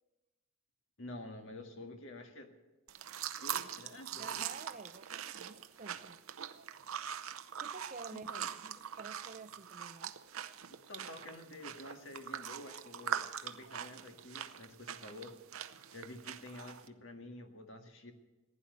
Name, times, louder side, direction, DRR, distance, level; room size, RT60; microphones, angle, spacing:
voice 1, 1.0-2.5 3.4-4.5 8.1-8.5 10.9-15.4 15.9-18.1, left 2 dB, 65° left, 1.8 m, -49 dB
sound 1, 2.9-16.9, right 9 dB, 85° right, 0.7 m, -43 dB
voice 2, 4.1-6.2 7.6-10.1, right 4 dB, 35° right, 0.5 m, -50 dB
15.5 x 10.0 x 7.9 m
head